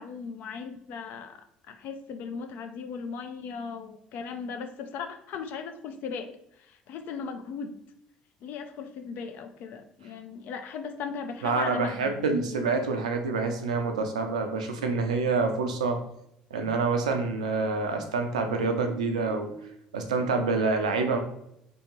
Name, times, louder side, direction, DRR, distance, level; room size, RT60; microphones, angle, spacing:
voice 1, 0.0-6.3 6.6-7.8 8.4-12.1, left 5 dB, 60° left, 6 dB, 0.3 m, -37 dB
voice 2, 11.4-16.0 16.5-21.2, right 4 dB, 90° right, 5 dB, 0.4 m, -27 dB
3.4 x 2.6 x 2.9 m, 0.75 s
hypercardioid pair, 65°, 4 cm